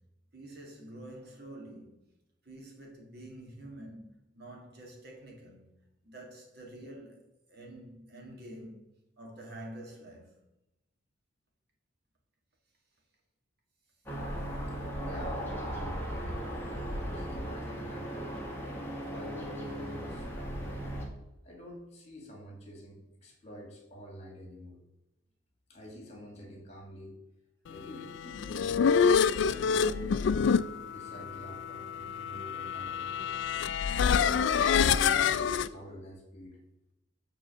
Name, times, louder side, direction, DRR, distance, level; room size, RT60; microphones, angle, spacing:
voice 1, 0.3-2.0 2.4-5.6 6.0-10.3, right 1 dB, 55° right, 1.6 m, -48 dB
sound 1, 14.1-21.1, equal, 10° left, 1.4 m, -37 dB
voice 2, 15.0-16.6 17.0-18.4 18.9-21.0 21.4-24.8 25.7-27.2 27.7-28.9 29.6-33.6 34.0-36.6, equal, 35° left, 2.1 m, -47 dB
sound 2, 28.2-35.7, left 6 dB, 65° left, 0.3 m, -27 dB
7.5 x 3.7 x 6.4 m
head